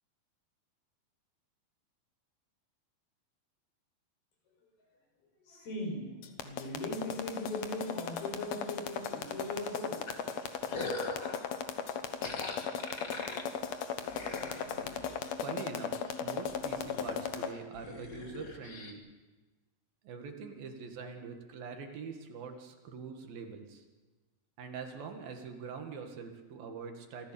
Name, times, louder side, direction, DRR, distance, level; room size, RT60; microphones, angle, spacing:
voice 1, 5.4-10.3, left 1 dB, 85° left, 0 dB, 7.7 m, -39 dB
sound 1, 6.2-17.5, left 7 dB, 60° left, 1.9 m, -36 dB
sound 2, 10.1-11.5 12.2-15.2 15.7-16.1 16.4-18.9, left 2 dB, 35° left, 1.4 m, -42 dB
voice 2, 15.3-19.0 20.0-23.8 24.6-27.3, right 5 dB, 70° right, 5 dB, 3.6 m, -44 dB
26.5 x 15.0 x 6.9 m, 1.2 s
omnidirectional pair, 4.3 m